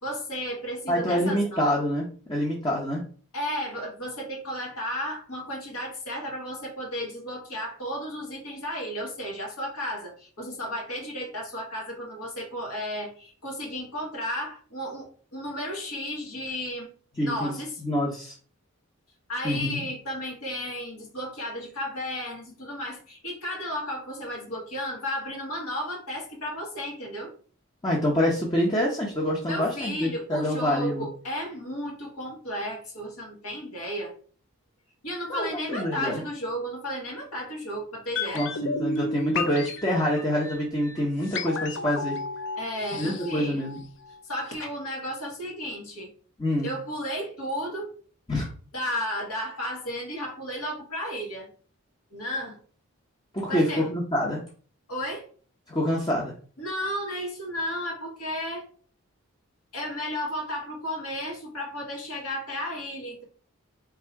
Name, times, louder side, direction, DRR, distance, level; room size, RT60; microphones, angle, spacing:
voice 1, 0.0-1.6 3.3-16.9 17.2-17.8 19.3-27.3 29.4-34.1 35.0-38.5 42.6-43.6 44.2-46.1 46.6-47.9 48.7-51.5 52.1-52.6 53.5-53.9 54.9-55.3 56.6-58.6 59.7-63.2, equal, 90° left, -1 dB, 1.7 m, -33 dB
voice 2, 0.9-3.0 17.2-17.6 17.8-18.3 19.4-19.8 27.8-31.0 35.3-36.2 38.3-42.2 43.0-43.8 46.4-46.7 48.3-48.5 53.3-54.4 55.7-56.3, equal, 20° left, -3 dB, 0.7 m, -26 dB
sound 1, 38.2-44.2 44.5-44.6, left 3 dB, 55° left, 0.5 m, -32 dB
3.5 x 2.7 x 4.5 m, 0.42 s
head